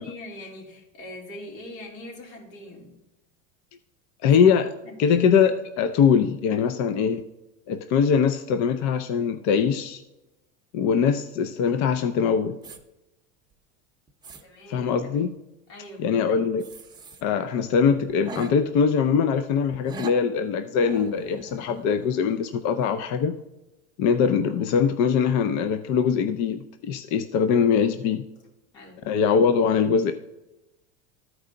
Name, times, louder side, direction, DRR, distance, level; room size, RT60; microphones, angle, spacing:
voice 1, 0.0-3.0 4.8-5.2 14.4-14.9 15.7-16.1 28.7-29.0, left 1 dB, 75° left, -1 dB, 3.5 m, -42 dB
voice 2, 4.2-4.7 5.0-7.2 7.7-10.0 10.7-12.6 14.7-15.3 16.0-16.6 17.2-23.4 24.0-28.2 29.1-30.1, left 6 dB, 45° left, 9 dB, 0.5 m, -22 dB
sound 1, 12.6-12.8 13.5-13.6 14.1-14.4 16.6-17.2 17.6-17.7 18.1-18.5 19.7-20.2 20.7-22.5 22.8-23.0, right 3 dB, 10° right, 0.7 m, -41 dB
13.0 x 4.7 x 3.8 m, 0.96 s
supercardioid pair, 125°, 40 cm